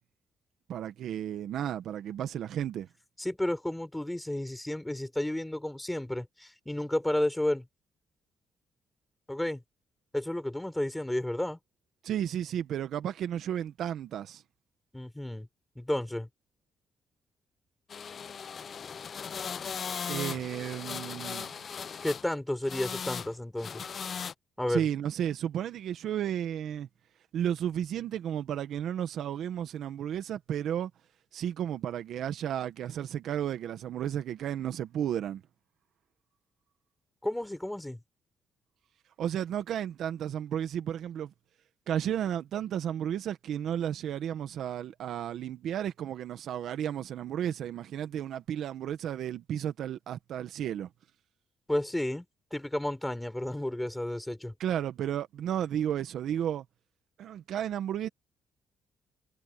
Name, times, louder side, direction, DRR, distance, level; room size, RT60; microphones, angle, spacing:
voice 1, 0.7-2.9 12.0-14.4 20.1-21.5 24.7-26.9 27.3-30.9 31.3-35.4 39.2-41.3 41.9-50.9 54.6-56.6 57.2-58.1, right 10 dB, 75° right, 1.4 m, -33 dB
voice 2, 3.2-7.7 9.3-9.6 10.1-11.6 14.9-15.5 15.7-16.3 22.0-23.8 24.6-24.9 37.2-38.0 51.7-52.2 52.5-54.5, left 1 dB, 10° left, 4.9 m, -32 dB
sound 1, 17.9-22.3 22.6-23.3 23.6-24.3, left 6 dB, 50° left, 0.9 m, -38 dB
cardioid pair, 90°, 0 cm